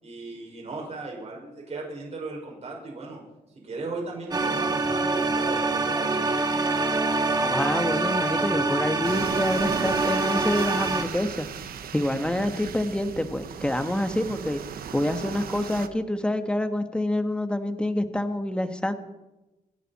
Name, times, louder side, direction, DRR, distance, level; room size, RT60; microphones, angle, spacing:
voice 1, 0.0-3.2 3.6-6.3, right 3 dB, 45° right, -1 dB, 5.8 m, -36 dB
sound 1, 4.3-11.0, right 3 dB, 25° right, 1.8 m, -25 dB
voice 2, 7.4-14.6 14.9-18.9, left 1 dB, 5° left, 8 dB, 1.4 m, -27 dB
sound 2, 9.0-15.9, right 7 dB, 75° right, 1.1 m, -36 dB
28.5 x 11.0 x 4.3 m, 1.0 s
cardioid pair, 105°, 16 cm